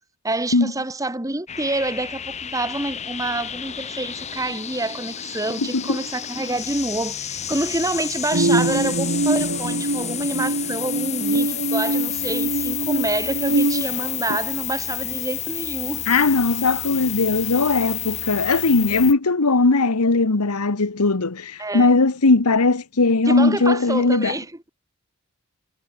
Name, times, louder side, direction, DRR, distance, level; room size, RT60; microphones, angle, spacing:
voice 1, 0.2-16.0 21.6-21.9 23.3-24.7, right 2 dB, 15° right, 1.3 m, -27 dB
sound 1, 1.5-19.1, left 11 dB, 30° left, 1.0 m, -30 dB
sound 2, 8.3-13.8, right 2 dB, 60° right, 1.3 m, -23 dB
voice 2, 16.1-24.3, left 3 dB, 90° left, 1.3 m, -19 dB
head